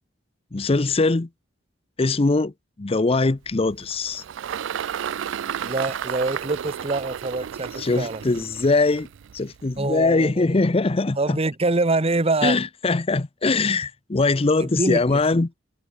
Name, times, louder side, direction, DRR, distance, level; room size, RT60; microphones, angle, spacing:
voice 1, 0.5-1.3 2.0-2.5 2.8-4.2 7.8-9.1 9.3-11.2 12.4-15.6, left 3 dB, 30° left, 0.6 m, -21 dB
Engine, 3.5-10.1, right 8 dB, 75° right, 0.4 m, -33 dB
voice 2, 5.6-8.2 9.8-10.6 11.2-12.6 14.6-15.2, right 2 dB, 30° right, 1.1 m, -25 dB
head